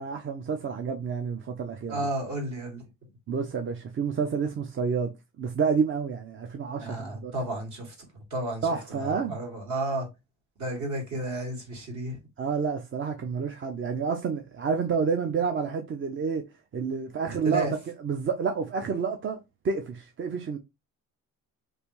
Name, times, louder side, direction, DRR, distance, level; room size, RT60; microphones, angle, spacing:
voice 1, 0.0-2.0 3.3-5.1 5.4-7.3 8.6-9.4 12.4-17.7 18.0-20.6, right 5 dB, 35° right, 0.5 m, -29 dB
voice 2, 1.9-2.8 6.8-7.9 8.3-8.7 9.0-10.1 10.6-12.2 17.5-17.7, right 2 dB, 55° right, 1.9 m, -32 dB
3.3 x 2.6 x 2.9 m
cardioid pair, 85°, 35 cm